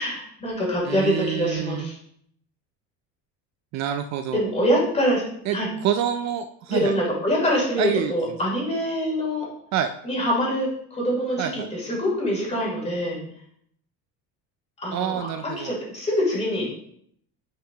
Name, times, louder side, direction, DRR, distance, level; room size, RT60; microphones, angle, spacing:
voice 1, 0.0-2.0 4.3-5.2 5.5-5.7 6.7-9.4 10.0-13.2 14.8-16.8, equal, 20° left, -4 dB, 3.2 m, -25 dB
voice 2, 0.8-1.8 3.7-4.4 5.5-5.6 5.8-6.9 7.8-8.1 9.7-9.9 11.4-11.7 14.9-15.7, right 9 dB, 50° right, 8 dB, 0.5 m, -27 dB
10.5 x 5.8 x 2.9 m, 0.68 s
cardioid pair, 170°, 36 cm